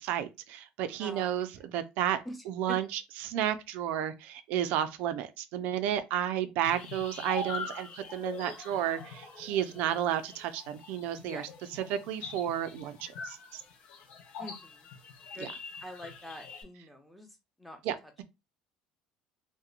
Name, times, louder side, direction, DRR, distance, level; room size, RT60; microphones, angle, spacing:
voice 1, 0.0-2.2 2.5-13.6 15.4-15.5 17.8-18.2, right 11 dB, 75° right, 0.4 m, -32 dB
voice 2, 1.0-1.4 2.2-2.4 2.7-2.8 11.2-11.5 14.4-14.9 15.3-15.5 15.8-18.2, left 1 dB, 5° left, 0.7 m, -45 dB
sound 1, 6.6-16.6, left 4 dB, 65° left, 0.6 m, -43 dB
2.8 x 2.1 x 2.4 m
cardioid pair, 115°, 3 cm